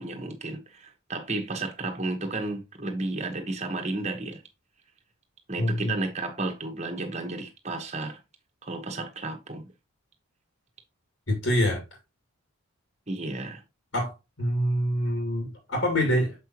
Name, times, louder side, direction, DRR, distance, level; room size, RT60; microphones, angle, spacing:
voice 1, 0.0-4.4 5.5-8.2 8.6-9.6 13.1-13.6, right 2 dB, 30° right, 1.4 m, -32 dB
voice 2, 5.6-5.9 11.3-11.8 13.9-16.4, equal, 65° left, 2.4 m, -26 dB
7.0 x 5.6 x 3.0 m
head